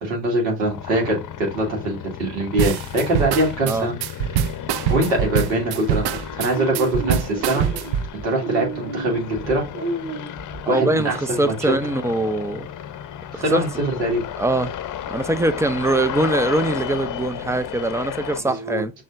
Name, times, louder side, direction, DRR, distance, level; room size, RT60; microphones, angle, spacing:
voice 1, 0.0-3.9 4.9-7.6 8.1-9.6 10.7-11.5 13.3-14.2 18.4-18.8, right 1 dB, 80° right, 2.6 m, -23 dB
sound 1, 0.7-18.4, left 10 dB, 40° left, 0.7 m, -33 dB
sound 2, 2.6-8.1, right 9 dB, 55° right, 0.6 m, -24 dB
sound 3, 6.1-11.1, right 4 dB, 35° right, 2.4 m, -31 dB
voice 2, 10.7-12.7 13.3-13.6 14.4-14.7 15.1-18.9, right 2 dB, 5° right, 0.4 m, -22 dB
6.2 x 3.4 x 2.5 m
hypercardioid pair, 65°, 49 cm